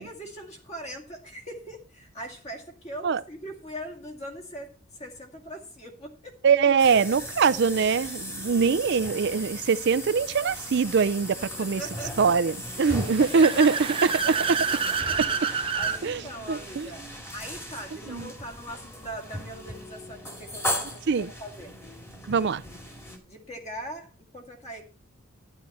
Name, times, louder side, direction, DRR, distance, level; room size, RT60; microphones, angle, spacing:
voice 1, 0.0-6.4 11.6-12.3 12.8-14.1 14.5-15.4 15.7-17.0 17.3-21.7 22.1-22.5 23.3-24.1 24.3-24.9, equal, 30° left, 2.2 m, -41 dB
voice 2, 6.4-11.8 12.2-13.8 14.0-14.6 15.2-15.5 16.0-16.2 16.5-16.9 18.1-18.3 21.1-21.3 22.3-22.6, right 5 dB, 55° right, 0.4 m, -23 dB
sound 1, 6.8-23.2, equal, 10° left, 2.1 m, -37 dB
Car / Accelerating revving vroom, 12.8-16.0, right 5 dB, 25° right, 0.7 m, -28 dB
11.5 x 9.8 x 4.2 m
head